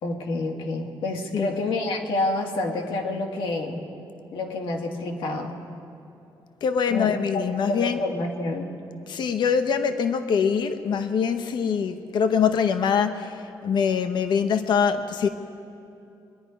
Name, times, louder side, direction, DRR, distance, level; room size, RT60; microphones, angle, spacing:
voice 1, 0.0-3.8 4.3-5.6 6.9-8.8, left 2 dB, 85° left, 1 dB, 1.7 m, -28 dB
voice 2, 6.6-8.0 9.1-15.3, left 6 dB, 60° left, 8 dB, 0.8 m, -24 dB
23.5 x 10.5 x 5.1 m, 2.9 s
cardioid pair, 155°, 9 cm